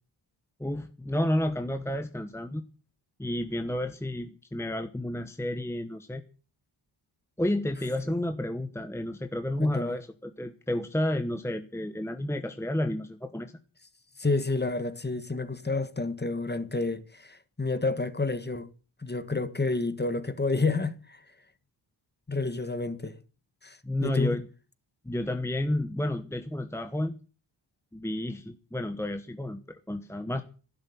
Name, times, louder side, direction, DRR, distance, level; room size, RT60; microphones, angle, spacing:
voice 1, 0.6-2.6 3.2-6.2 7.4-13.5 23.8-24.5 25.0-27.1 27.9-30.4, left 1 dB, 5° left, 1.1 m, -31 dB
voice 2, 9.6-9.9 14.2-18.7 19.0-21.2 22.3-23.2 23.6-24.4, left 3 dB, 20° left, 1.6 m, -29 dB
12.0 x 11.5 x 9.4 m
wide cardioid pair, 100°, 47 cm